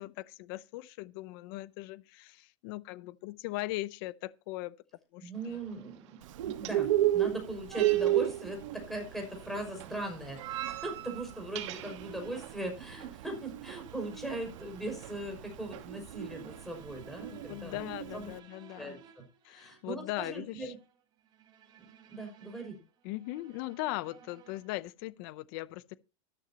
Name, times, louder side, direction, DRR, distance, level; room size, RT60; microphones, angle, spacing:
voice 1, 0.0-4.7 5.1-5.6 17.3-19.0 19.4-20.7 23.0-26.0, left 18 dB, 45° left, 0.6 m, -39 dB
voice 2, 5.2-18.3 18.8-20.8 21.8-22.8, right 1 dB, ahead, 5.8 m, -40 dB
sound 1, 5.3-16.8, right 13 dB, 65° right, 2.6 m, -47 dB
Bird, 6.2-18.4, right 13 dB, 85° right, 1.1 m, -33 dB
sound 2, 6.9-24.9, right 8 dB, 25° right, 4.5 m, -59 dB
13.5 x 13.5 x 2.9 m
supercardioid pair, 165°, 16 cm